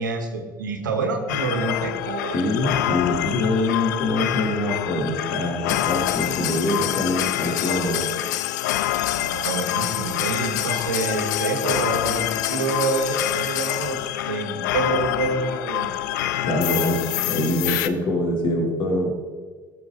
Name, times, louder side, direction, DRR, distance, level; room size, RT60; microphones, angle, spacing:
voice 1, 0.0-2.4 9.1-14.0 14.3-15.9, right 4 dB, 80° right, 4 dB, 1.7 m, -27 dB
sound 1, 1.3-17.9, left 13 dB, 70° left, 0.5 m, -26 dB
voice 2, 2.3-8.1 16.4-19.1, left 1 dB, 50° left, 0 dB, 3.5 m, -24 dB
19.5 x 6.9 x 4.0 m, 1.5 s
figure-of-eight pair, 55°, 10 cm